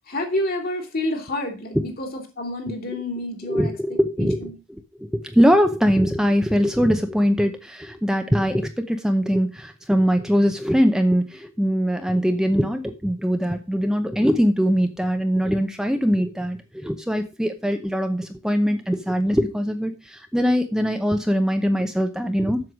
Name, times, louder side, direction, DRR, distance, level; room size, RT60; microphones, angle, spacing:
voice 1, 0.1-4.5, left 1 dB, 50° left, 5 dB, 2.8 m, -29 dB
voice 2, 3.4-22.6, equal, 5° right, 6 dB, 0.7 m, -22 dB
7.9 x 6.9 x 6.0 m, 0.30 s
head